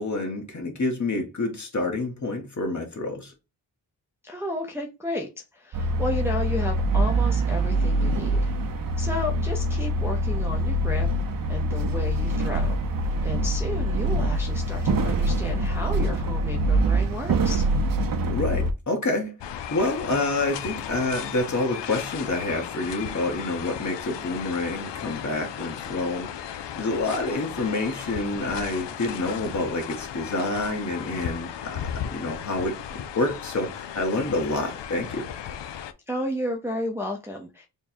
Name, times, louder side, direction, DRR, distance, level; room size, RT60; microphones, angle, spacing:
voice 1, 0.0-3.3 18.3-35.3, left 2 dB, 40° left, 1.3 m, -28 dB
voice 2, 4.2-8.5 9.0-11.1 11.5-12.8 13.2-17.7 36.1-37.7, left 1 dB, 5° right, 0.6 m, -32 dB
sound 1, 5.7-18.7, right 1 dB, 50° right, 0.7 m, -24 dB
sound 2, 19.4-35.9, left 9 dB, 70° left, 0.6 m, -36 dB
3.4 x 2.3 x 4.3 m
cardioid pair, 80°, 45 cm